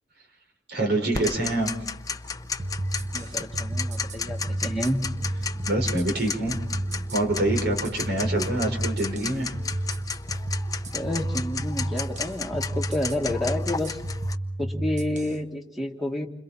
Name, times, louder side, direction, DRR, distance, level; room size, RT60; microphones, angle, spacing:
voice 1, 0.7-1.7 5.7-6.6 7.1-9.5, right 2 dB, 65° right, 3 dB, 5.2 m, -26 dB
Tick-tock, 1.1-14.3, left 5 dB, 20° left, 0.8 m, -34 dB
sound 1, 2.6-15.4, right 1 dB, 40° right, 1.5 m, -31 dB
voice 2, 3.1-5.0 10.9-14.0 14.6-16.3, left 1 dB, ahead, 2 dB, 2.1 m, -29 dB
29.5 x 26.0 x 4.3 m, 0.82 s
head